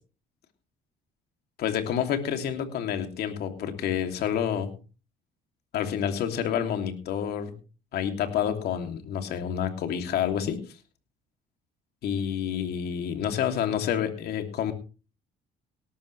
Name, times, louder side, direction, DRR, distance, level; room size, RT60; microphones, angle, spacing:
voice 1, 1.6-4.7 5.7-7.5 7.9-10.6 12.0-14.7, left 9 dB, 70° left, 6 dB, 2.9 m, -28 dB
18.0 x 13.0 x 3.3 m, 0.35 s
cardioid pair, 110°, 17 cm